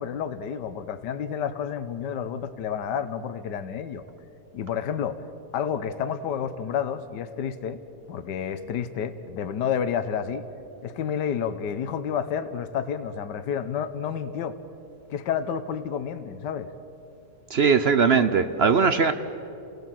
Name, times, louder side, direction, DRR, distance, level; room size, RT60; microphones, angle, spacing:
voice 1, 0.0-4.0 4.5-5.2 5.5-7.8 8.1-10.5 10.8-14.6 15.1-16.7, left 8 dB, 80° left, 11 dB, 1.5 m, -30 dB
voice 2, 17.5-19.1, right 5 dB, 55° right, 10 dB, 0.7 m, -20 dB
29.0 x 17.5 x 7.6 m, 2.8 s
omnidirectional pair, 1.9 m